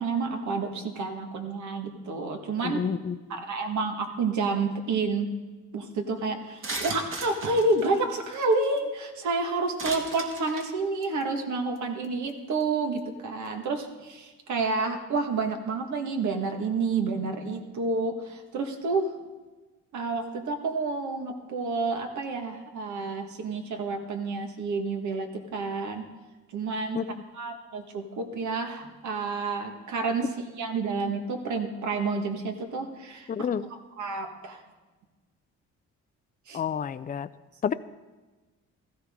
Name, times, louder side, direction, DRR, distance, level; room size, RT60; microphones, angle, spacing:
voice 1, 0.0-2.8 3.3-5.3 5.7-19.1 19.9-26.0 26.5-27.0 27.4-30.3 30.6-33.3 34.0-34.6 36.5-36.6, right 3 dB, 70° right, 4 dB, 1.8 m, -29 dB
voice 2, 2.6-3.4 26.9-27.2 33.3-33.7 36.5-37.3 37.6-37.7, left 7 dB, 30° left, 13 dB, 0.5 m, -30 dB
sound 1, 6.6-8.8 9.8-10.7 11.0-11.2 11.8-11.9 12.0-12.3 12.6-12.7, right 2 dB, 45° right, 2.0 m, -36 dB
16.0 x 14.0 x 3.8 m, 1.3 s
cardioid pair, 90°, 30 cm